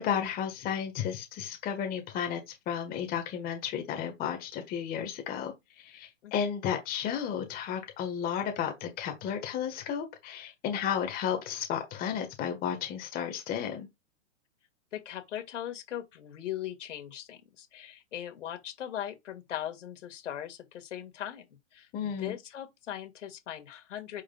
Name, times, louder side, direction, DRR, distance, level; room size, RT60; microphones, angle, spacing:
voice 1, 0.0-13.9 21.9-22.4, left 8 dB, 20° left, 1.6 m, -33 dB
voice 2, 14.9-21.5 21.7-24.2, left 11 dB, 65° left, 2.4 m, -39 dB
9.0 x 4.9 x 2.4 m
hypercardioid pair, 140°, 39 cm